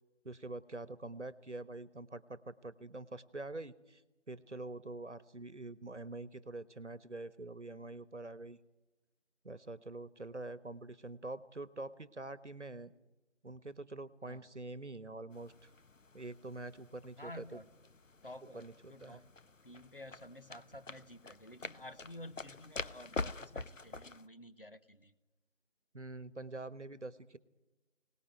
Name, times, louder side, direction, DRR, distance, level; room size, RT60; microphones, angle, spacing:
voice 1, 0.2-4.0 4.3-8.6 9.4-12.9 13.4-15.7 16.1-17.6 18.5-19.2 25.9-27.4, right 2 dB, 65° right, 16 dB, 1.3 m, -45 dB
sound 1, 15.3-24.3, left 3 dB, 85° left, 1.0 m, -46 dB
voice 2, 17.2-17.7 18.2-19.3 19.6-25.1, left 1 dB, 45° left, 11 dB, 1.3 m, -51 dB
24.0 x 19.0 x 9.2 m, 1.1 s
figure-of-eight pair, 175°, 38 cm